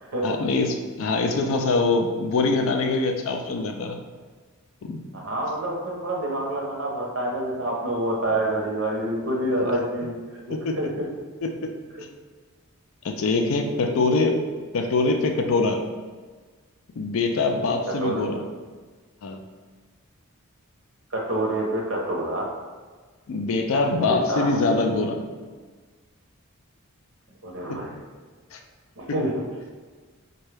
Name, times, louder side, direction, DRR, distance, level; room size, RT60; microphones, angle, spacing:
voice 1, 0.2-4.0 4.8-5.0 10.5-10.7 11.4-11.7 13.0-14.4 14.7-15.8 17.0-18.4 19.2-19.4 23.3-25.2 27.7-27.8 28.5-28.6, left 3 dB, 65° left, 5 dB, 0.4 m, -23 dB
voice 2, 5.1-11.1 12.0-12.1 17.6-17.7 18.0-18.4 21.1-22.5 23.9-24.5 27.4-28.0 29.0-29.3, right 1 dB, 60° right, -2 dB, 0.7 m, -27 dB
4.3 x 2.2 x 3.3 m, 1.4 s
head